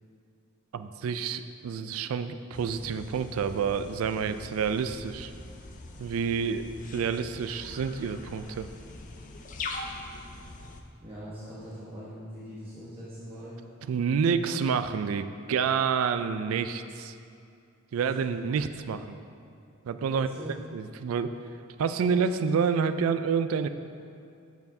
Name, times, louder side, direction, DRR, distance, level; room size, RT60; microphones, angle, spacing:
voice 1, 0.7-5.3 6.0-6.6 6.9-8.7 13.9-17.2 17.9-19.2 19.9-21.3 21.8-23.7, right 6 dB, 90° right, 11 dB, 0.3 m, -28 dB
sound 1, 2.5-10.8, left 3 dB, 40° left, 0.5 m, -42 dB
voice 2, 11.0-13.6 20.1-20.6, equal, 30° right, -9 dB, 1.1 m, -42 dB
8.0 x 6.8 x 2.7 m, 2.5 s
head